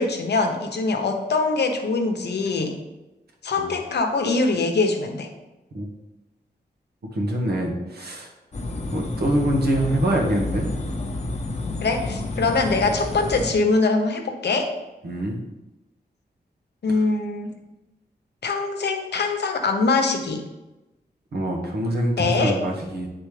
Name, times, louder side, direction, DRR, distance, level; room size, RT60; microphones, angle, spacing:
voice 1, 0.0-2.8 3.4-5.3 11.8-14.7 16.8-17.5 18.4-20.4 22.2-22.6, left 3 dB, 75° left, 4 dB, 0.9 m, -23 dB
voice 2, 7.1-8.3 8.9-10.7 15.0-15.4 21.3-23.1, right 1 dB, 70° right, 0 dB, 1.4 m, -24 dB
sound 1, 8.5-13.5, left 2 dB, 40° left, 0.9 m, -30 dB
8.8 x 4.2 x 3.3 m, 1.0 s
wide cardioid pair, 75°, 17 cm